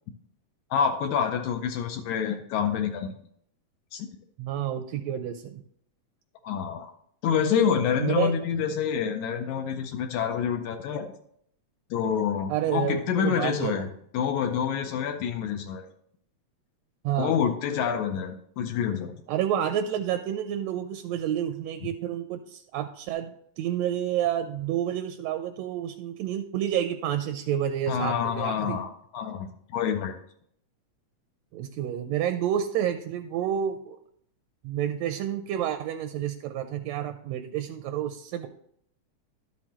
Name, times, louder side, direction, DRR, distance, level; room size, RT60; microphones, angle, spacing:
voice 1, 0.7-3.1 3.9-4.1 6.4-6.9 7.2-11.1 11.9-13.9 14.1-15.8 17.2-19.1 27.9-30.2, left 7 dB, 85° left, 4 dB, 2.1 m, -27 dB
voice 2, 4.4-5.6 8.0-8.3 12.5-13.9 17.0-17.4 19.3-28.8 31.5-34.0 34.6-38.5, right 10 dB, 80° right, 8 dB, 1.6 m, -29 dB
12.0 x 6.3 x 3.0 m, 0.68 s
omnidirectional pair, 3.3 m